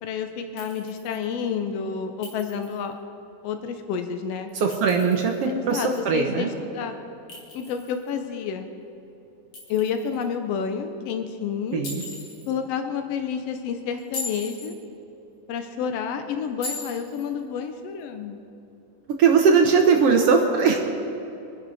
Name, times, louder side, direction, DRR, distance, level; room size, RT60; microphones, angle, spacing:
voice 1, 0.0-3.0 3.4-4.5 5.5-7.0 7.5-8.7 9.7-11.8 12.5-14.7 15.5-18.4, left 7 dB, 85° left, 7 dB, 1.4 m, -29 dB
Chink clink, 0.6-1.2 2.2-2.9 4.5-5.4 7.3-8.2 9.5-10.3 11.8-12.5 14.0-14.8 16.6-17.3, left 3 dB, 40° left, 3.0 m, -38 dB
voice 2, 4.5-6.5 11.7-12.0 19.2-20.8, right 5 dB, 70° right, 3 dB, 1.4 m, -20 dB
25.0 x 10.5 x 4.1 m, 3.0 s
omnidirectional pair, 3.8 m